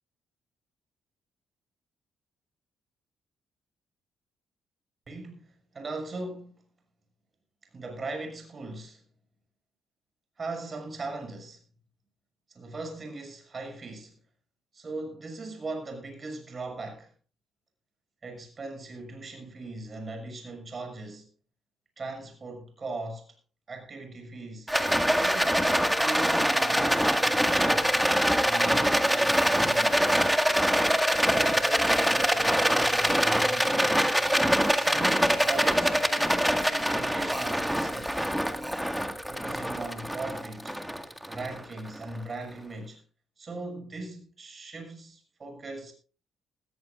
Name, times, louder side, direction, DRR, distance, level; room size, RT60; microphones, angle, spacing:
voice 1, 5.1-6.6 7.7-9.0 10.4-11.6 12.5-14.1 14.7-17.1 18.2-21.3 22.0-23.3 23.7-24.7 25.1-27.9 28.4-30.1 31.2-33.9 34.7-38.2 39.3-40.8 41.3-43.0 43.4-45.9, right 3 dB, 35° right, 6.5 m, -39 dB
Rattle, 24.7-42.0, equal, ahead, 1.9 m, -24 dB
20.0 x 15.0 x 2.5 m
cardioid pair, 90°, 0 cm